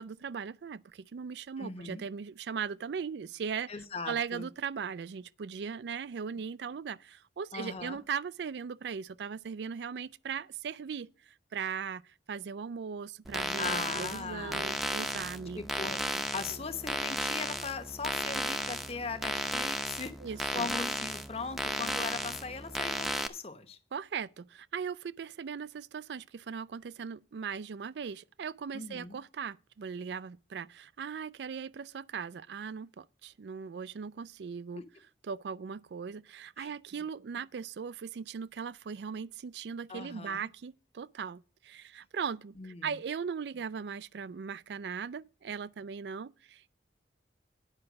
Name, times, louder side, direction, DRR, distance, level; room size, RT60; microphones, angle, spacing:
voice 1, 0.0-3.7 4.1-15.6 20.2-20.7 23.9-34.8 35.2-46.7, right 6 dB, 70° right, 0.4 m, -39 dB
voice 2, 1.6-2.0 3.7-4.5 7.5-8.0 13.6-14.7 15.5-20.1 20.5-23.8 28.7-29.2 34.8-34.9 36.6-36.7 39.9-40.5 42.6-43.0, left 4 dB, 35° left, 1.1 m, -39 dB
sound 1, 13.2-23.3, equal, ahead, 0.6 m, -34 dB
9.8 x 5.7 x 6.2 m
head